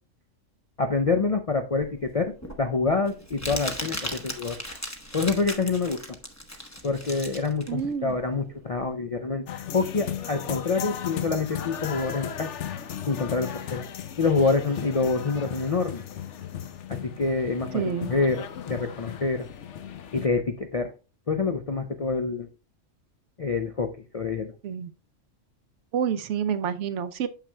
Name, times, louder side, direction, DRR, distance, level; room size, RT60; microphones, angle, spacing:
voice 1, 0.8-2.3 2.6-4.6 5.1-6.0 6.8-9.4 9.7-12.5 13.1-13.8 14.2-16.0 16.9-19.5 20.1-20.9 21.3-22.5 23.4-24.5, left 4 dB, 50° left, 0.4 m, -26 dB
Crumpling crinkling, 1.8-8.9, left 1 dB, 15° left, 0.8 m, -37 dB
voice 2, 7.7-8.2 17.7-18.1 24.6-24.9 25.9-27.3, right 8 dB, 70° right, 0.9 m, -28 dB
sound 1, 9.5-20.3, left 9 dB, 70° left, 1.0 m, -36 dB
9.1 x 6.6 x 2.2 m
omnidirectional pair, 1.3 m